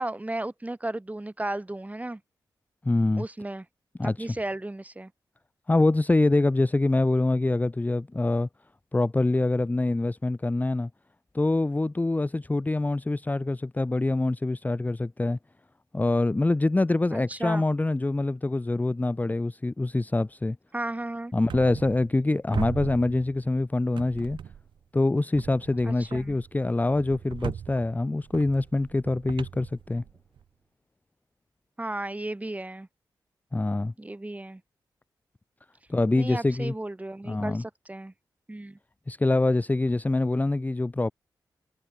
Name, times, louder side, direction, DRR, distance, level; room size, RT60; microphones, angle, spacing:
voice 1, 0.0-2.2 3.2-3.6 4.0-5.1 17.1-17.6 20.7-21.3 25.8-26.4 31.8-32.9 34.0-34.6 36.2-38.1 38.5-38.8, right 1 dB, 20° right, 5.6 m, -34 dB
voice 2, 2.8-3.2 4.0-4.3 5.7-8.5 8.9-10.9 11.3-15.4 15.9-20.6 21.3-24.4 24.9-30.0 33.5-33.9 35.9-36.7 37.3-37.6 39.1-41.1, left 2 dB, 20° left, 0.8 m, -25 dB
sound 1, 21.5-22.3 22.5-23.6 24.0-24.8 25.3-30.4, right 8 dB, 85° right, 4.7 m, -39 dB
cardioid pair, 65°, 8 cm